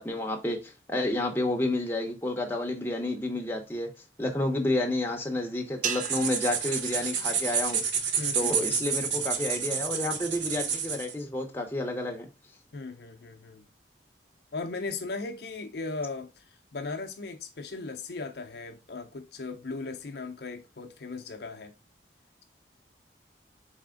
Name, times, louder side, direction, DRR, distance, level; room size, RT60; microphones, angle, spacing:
voice 1, 0.0-3.9 4.2-7.8 8.3-12.3, left 2 dB, 10° left, 0.7 m, -30 dB
sound 1, 5.8-8.3, right 8 dB, 45° right, 0.3 m, -38 dB
sound 2, 5.9-11.1, right 6 dB, 85° right, 0.7 m, -29 dB
voice 2, 8.2-8.7 12.7-13.6 14.5-21.7, left 3 dB, 60° left, 0.5 m, -37 dB
4.2 x 3.4 x 3.6 m
head